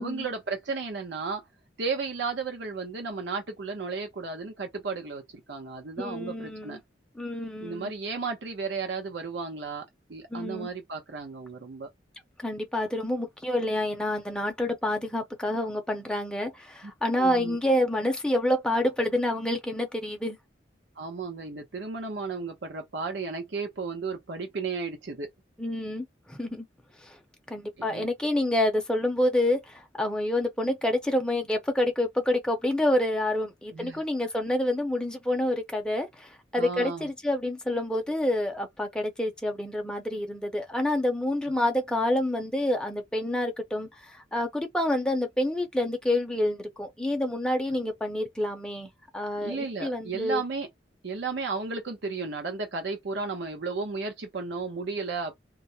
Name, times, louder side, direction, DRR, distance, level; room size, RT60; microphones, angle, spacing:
voice 1, 0.0-1.4 1.8-6.8 7.6-11.9 16.8-16.9 17.2-17.6 21.0-25.3 27.8-28.1 33.7-34.0 36.6-37.1 49.4-50.7 51.0-55.4, right 4 dB, 75° right, 0.6 m, -34 dB
voice 2, 6.0-6.8 7.2-7.9 10.3-10.7 12.4-20.4 25.6-26.7 27.0-27.2 27.5-50.4, left 1 dB, 5° left, 0.5 m, -28 dB
2.3 x 2.0 x 2.6 m
head